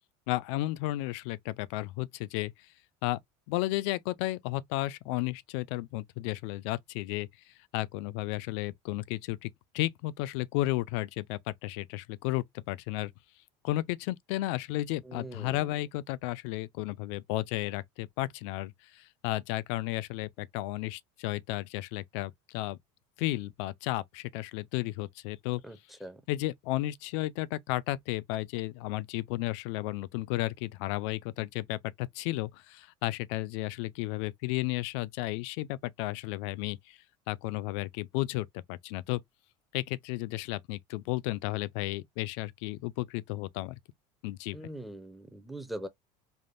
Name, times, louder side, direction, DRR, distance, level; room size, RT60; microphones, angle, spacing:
voice 1, 0.3-2.5 3.0-3.2 3.5-7.3 7.7-13.1 13.6-22.8 23.2-25.6 26.3-37.0 37.3-39.2 39.7-43.8 44.2-44.6, left 17 dB, 75° left, 0.4 m, -33 dB
voice 2, 15.1-15.6 25.6-26.2 44.5-45.9, right 1 dB, ahead, 0.5 m, -42 dB
3.4 x 2.1 x 2.5 m
supercardioid pair, 130°, 15 cm